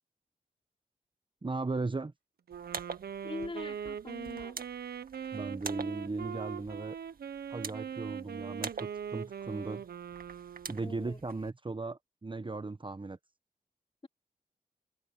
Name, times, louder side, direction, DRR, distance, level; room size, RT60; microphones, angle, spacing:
voice 1, 1.4-2.1 5.3-7.0 7.5-9.8 10.7-13.2, right 3 dB, 30° right, 1.0 m, -37 dB
sound 1, 2.5-11.5, right 5 dB, 65° right, 2.1 m, -46 dB
Wind instrument woodwind instrument, 2.5-11.1, right 8 dB, 80° right, 1.1 m, -41 dB
voice 2, 3.2-4.7 10.8-11.2, left 2 dB, 35° left, 3.8 m, -42 dB
cardioid pair, 40°, 16 cm